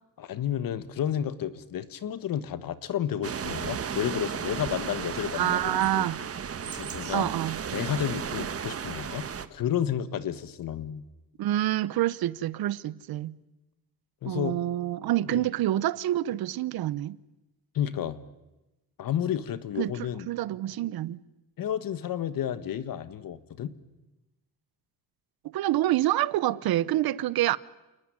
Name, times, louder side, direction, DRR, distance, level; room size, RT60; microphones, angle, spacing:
voice 1, 0.2-6.1 6.7-7.3 7.7-11.0 14.2-14.6 15.3-15.4 17.7-18.2 19.0-20.3 21.6-23.7, left 10 dB, 65° left, 1.6 m, -31 dB
sound 1, 3.2-9.5, right 7 dB, 40° right, 1.3 m, -34 dB
voice 2, 5.3-6.2 7.1-7.6 11.4-13.4 14.2-17.2 19.8-19.9 20.3-21.2 25.5-27.6, right 14 dB, 80° right, 0.9 m, -27 dB
28.5 x 19.5 x 9.8 m
cardioid pair, 125°, 36 cm